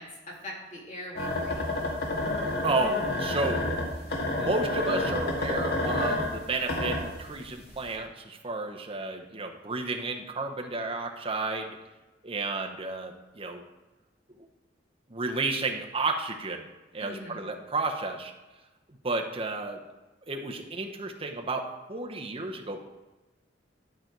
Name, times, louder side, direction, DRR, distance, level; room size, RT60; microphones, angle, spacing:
voice 1, 0.0-1.7 17.0-17.4, left 1 dB, 45° left, -4 dB, 2.3 m, -42 dB
sound 1, 1.2-7.4 7.9-8.0, left 2 dB, 60° left, 1.9 m, -29 dB
voice 2, 2.6-3.7 4.3-11.8 12.2-13.6 15.1-16.7 16.9-18.3 19.0-19.8 20.3-22.8, right 3 dB, 30° right, 2 dB, 0.9 m, -32 dB
11.5 x 5.2 x 4.6 m, 1.1 s
head